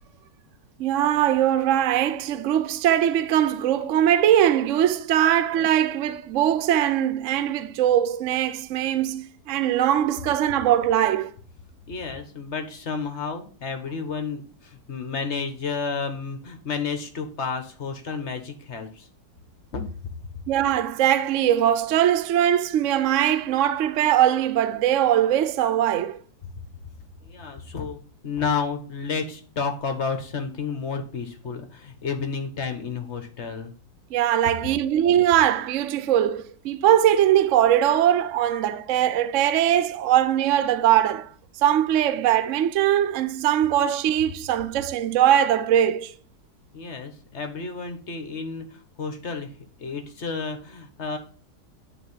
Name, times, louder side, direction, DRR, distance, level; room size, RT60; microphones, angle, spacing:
voice 1, 0.8-11.3 20.5-26.2 34.1-41.3 41.6-46.1, right 11 dB, 70° right, 0.7 m, -21 dB
voice 2, 11.9-19.1 19.7-19.8 27.2-33.7 46.7-49.5 49.8-51.2, left 5 dB, 40° left, 1.4 m, -31 dB
9.4 x 3.6 x 5.6 m
omnidirectional pair, 2.0 m